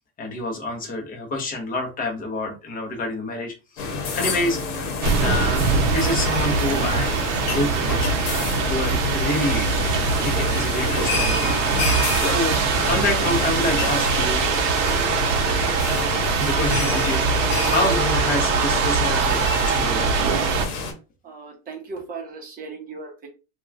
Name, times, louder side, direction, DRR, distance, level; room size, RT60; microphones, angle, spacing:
voice 1, 0.2-5.6 5.9-8.2 8.7-9.7 10.2-11.5 11.8-14.4 16.3-20.3, left 2 dB, 20° left, 0.8 m, -28 dB
sound 1, 3.8-20.9, left 3 dB, 70° left, 1.0 m, -28 dB
sound 2, 5.0-20.7, right 5 dB, 75° right, 0.7 m, -22 dB
voice 2, 21.2-23.3, right 4 dB, 25° right, 0.8 m, -37 dB
2.8 x 2.3 x 2.3 m
supercardioid pair, 155°, 38 cm